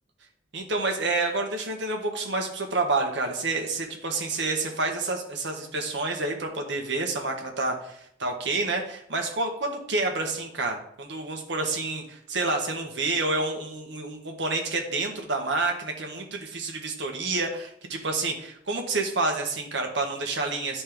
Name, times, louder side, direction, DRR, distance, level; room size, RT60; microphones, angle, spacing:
voice 1, 0.5-20.8, right 3 dB, 70° right, 2 dB, 1.4 m, -29 dB
11.0 x 4.3 x 3.6 m, 0.72 s
head